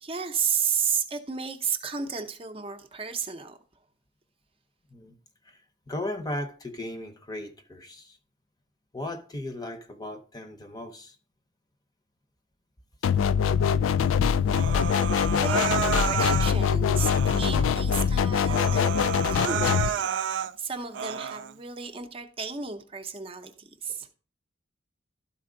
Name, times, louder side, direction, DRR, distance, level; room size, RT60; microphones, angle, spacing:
voice 1, 0.0-3.6 15.3-19.0 19.3-20.1 20.6-24.1, right 6 dB, 30° right, 0.6 m, -32 dB
voice 2, 5.9-8.2 8.9-11.2 13.4-13.5 13.8-14.1 14.5-14.6 16.1-16.5 17.6-17.7 18.0-18.1, left 1 dB, 20° left, 0.7 m, -37 dB
sound 1, 13.0-19.9, left 7 dB, 90° left, 0.3 m, -23 dB
Human voice, 14.5-16.5 16.9-17.6 18.0-18.1 18.4-20.5 20.9-21.5, right 8 dB, 65° right, 0.3 m, -30 dB
12.5 x 4.3 x 3.8 m
head